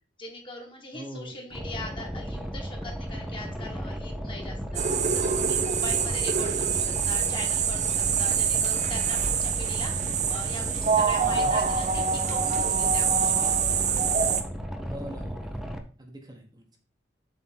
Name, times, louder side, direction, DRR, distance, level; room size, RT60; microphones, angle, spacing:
voice 1, 0.2-13.5, left 2 dB, 30° left, 1 dB, 1.7 m, -41 dB
voice 2, 0.9-1.3 5.0-5.3 11.3-11.6 14.9-15.7 16.0-16.6, right 1 dB, 25° right, 2 dB, 1.2 m, -42 dB
Boat Water vehicle, 1.5-15.8, equal, ahead, 0.8 m, -35 dB
sound 1, 4.7-14.4, right 6 dB, 40° right, 0.7 m, -25 dB
7.5 x 3.7 x 5.8 m, 0.38 s
head